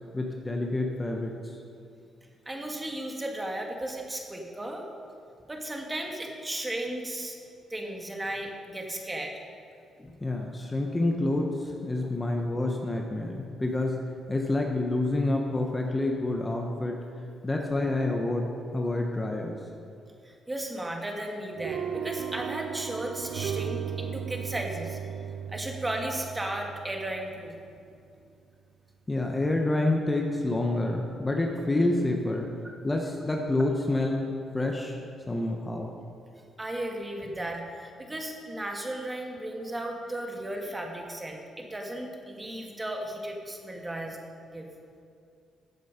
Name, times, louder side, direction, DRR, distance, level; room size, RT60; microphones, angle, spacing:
voice 1, 0.1-1.3 10.0-14.0 14.3-17.0 17.4-18.4 18.7-19.6 29.1-32.5 32.8-35.0 35.3-35.9, left 2 dB, 20° left, 1 dB, 1.2 m, -28 dB
voice 2, 2.4-4.8 5.5-7.4 7.7-9.3 12.0-12.1 20.2-25.0 25.5-27.5 32.6-32.7 36.6-44.2 44.5-44.7, right 1 dB, 15° right, 1 dB, 1.8 m, -35 dB
sound 1, 21.6-27.8, right 8 dB, 75° right, 0.5 m, -36 dB
14.5 x 7.5 x 5.3 m, 2.4 s
cardioid pair, 90°, 0 cm